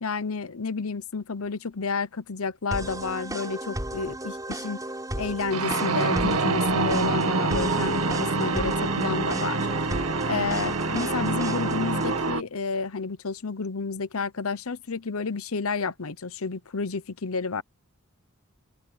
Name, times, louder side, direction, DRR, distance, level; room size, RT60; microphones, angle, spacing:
voice 1, 0.0-4.8 5.1-9.7 10.2-17.6, left 4 dB, 70° left, 1.0 m, -30 dB
sound 1, 2.7-12.3, right 1 dB, 15° right, 5.3 m, -34 dB
sound 2, 5.5-12.4, right 3 dB, 80° right, 2.0 m, -26 dB
open air
head